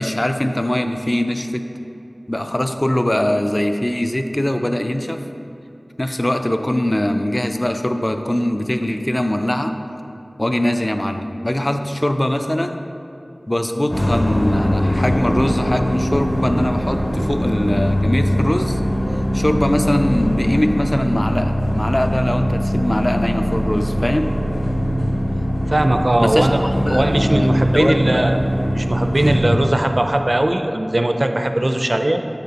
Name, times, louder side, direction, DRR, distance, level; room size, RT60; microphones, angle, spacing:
voice 1, 0.0-1.7 2.3-5.2 6.0-9.7 10.4-12.8 13.5-18.8 19.3-24.3 26.2-28.3, left 1 dB, 35° left, 6 dB, 0.4 m, -21 dB
sound 1, 13.9-29.6, equal, 55° left, 1.7 m, -21 dB
voice 2, 25.7-28.4 28.7-32.2, right 1 dB, 55° right, 6 dB, 0.4 m, -19 dB
8.4 x 6.7 x 2.9 m, 2.8 s
wide cardioid pair, 45°, 0 cm